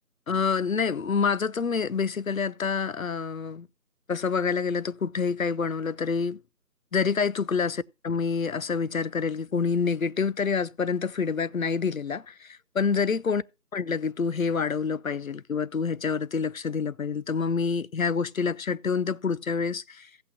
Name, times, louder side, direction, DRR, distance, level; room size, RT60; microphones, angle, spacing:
voice 1, 0.3-3.7 4.1-6.4 6.9-13.4 13.7-20.1, left 5 dB, 60° left, 0.5 m, -27 dB
15.5 x 8.6 x 2.7 m
figure-of-eight pair, 165°, 48 cm